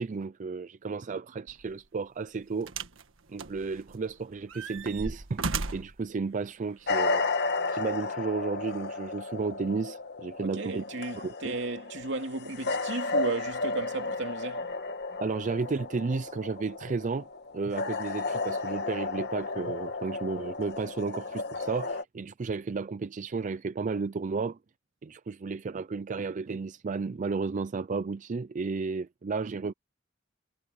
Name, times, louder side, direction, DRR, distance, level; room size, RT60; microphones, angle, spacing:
voice 1, 0.0-2.7 3.3-5.4 5.7-10.8 11.1-11.6 15.2-17.3 17.5-24.6 25.0-29.7, right 4 dB, 40° right, 0.4 m, -33 dB
sound 1, 1.5-1.7 2.7-3.0 3.4-4.1 4.5-6.0 6.9-7.0, right 4 dB, 80° right, 1.5 m, -35 dB
sound 2, 6.9-22.0, left 3 dB, 55° left, 1.6 m, -33 dB
voice 2, 10.4-14.7, right 2 dB, 65° right, 2.8 m, -34 dB
head